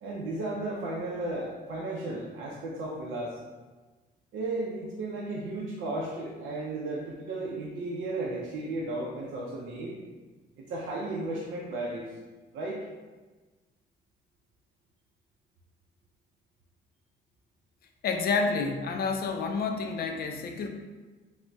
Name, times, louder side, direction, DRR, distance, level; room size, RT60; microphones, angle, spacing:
voice 1, 0.0-3.4 4.3-10.0 10.6-12.1 12.5-12.8, right 2 dB, 80° right, -4 dB, 0.5 m, -34 dB
voice 2, 18.0-20.7, left 4 dB, 50° left, 4 dB, 0.4 m, -29 dB
3.9 x 2.0 x 2.2 m, 1.3 s
cardioid pair, 90°, 20 cm